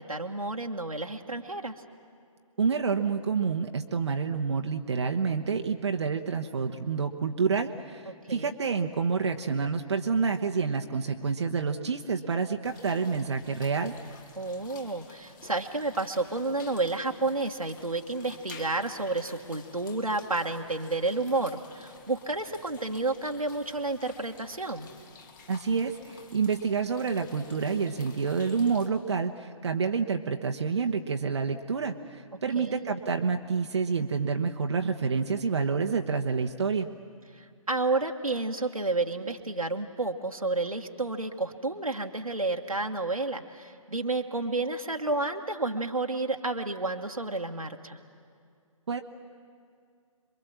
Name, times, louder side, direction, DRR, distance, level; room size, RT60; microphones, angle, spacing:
voice 1, 0.0-1.7 8.3-8.5 14.4-24.9 32.5-32.8 37.3-48.0, right 2 dB, 85° right, 2 dB, 1.5 m, -31 dB
voice 2, 2.6-13.9 25.5-36.9 48.9-49.0, right 5 dB, 55° right, 5 dB, 1.0 m, -28 dB
sound 1, 12.6-28.9, left 5 dB, 35° left, 2.3 m, -52 dB
27.0 x 22.5 x 7.5 m, 2.3 s
figure-of-eight pair, 135°, 18 cm